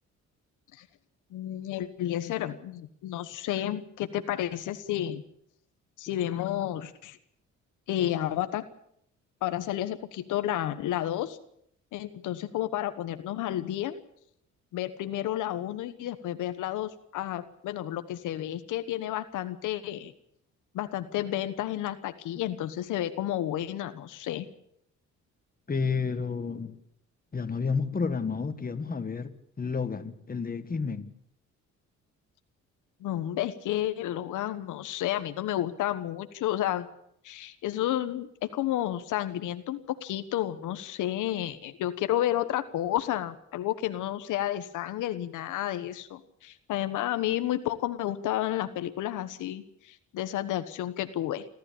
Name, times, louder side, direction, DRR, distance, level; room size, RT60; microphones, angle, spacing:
voice 1, 1.3-5.2 6.0-7.2 7.9-8.6 9.4-11.4 11.9-14.0 14.7-20.1 20.7-24.5 33.0-36.9 37.2-51.5, left 12 dB, 85° left, 1.3 m, -31 dB
voice 2, 25.7-26.8 27.3-31.1, left 5 dB, 30° left, 1.8 m, -31 dB
29.0 x 13.0 x 8.6 m
cardioid pair, 90°, 30 cm